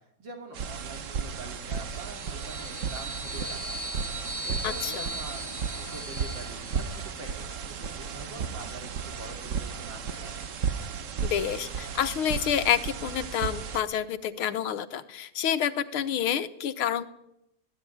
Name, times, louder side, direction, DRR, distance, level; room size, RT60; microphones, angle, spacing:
voice 1, 0.0-3.8 4.5-10.4, right 2 dB, 60° right, 4 dB, 3.5 m, -45 dB
sound 1, 0.5-13.8, right 6 dB, 45° right, 1.2 m, -34 dB
sound 2, 1.7-7.2, right 1 dB, 10° right, 4.0 m, -38 dB
voice 2, 4.6-5.1 11.2-17.1, left 9 dB, 90° left, 12 dB, 2.0 m, -28 dB
20.5 x 17.0 x 10.0 m, 0.83 s
omnidirectional pair, 2.3 m